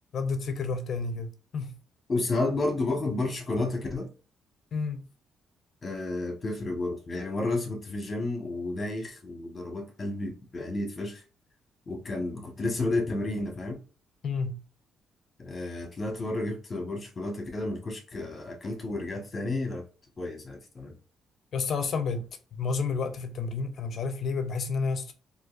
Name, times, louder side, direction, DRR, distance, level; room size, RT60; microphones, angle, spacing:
voice 1, 0.1-1.8 4.7-5.0 14.2-14.6 21.5-22.3 22.6-25.1, left 4 dB, 55° left, 0.6 m, -30 dB
voice 2, 2.1-4.1 5.8-11.2 11.9-13.8 15.4-19.8 20.2-20.9, left 2 dB, 35° left, 1.2 m, -31 dB
3.9 x 2.7 x 2.5 m
cardioid pair, 90°, 0 cm